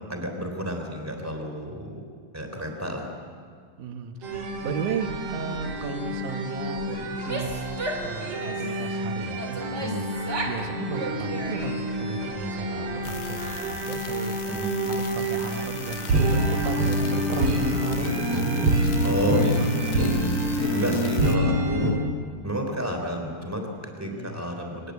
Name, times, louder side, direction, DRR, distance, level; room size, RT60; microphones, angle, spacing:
voice 1, 0.1-2.0 2.3-3.1 9.8-10.0 14.5-14.7 19.0-19.6 20.7-22.0 22.4-24.9, equal, 5° right, 3 dB, 3.3 m, -30 dB
voice 2, 3.8-9.6 10.5-14.4 14.9-20.2 20.8-21.1 24.1-24.4, right 5 dB, 80° right, 7 dB, 2.8 m, -35 dB
sound 1, 4.2-21.9, right 1 dB, 55° right, 3.4 m, -27 dB
Female speech woman speaking / Yell, 7.1-8.7 9.4-10.6 10.9-11.9, right 2 dB, 25° right, 2.6 m, -34 dB
sound 2, 13.0-21.4, left 11 dB, 80° left, 2.4 m, -41 dB
26.0 x 20.0 x 8.4 m, 2.1 s
omnidirectional pair, 3.5 m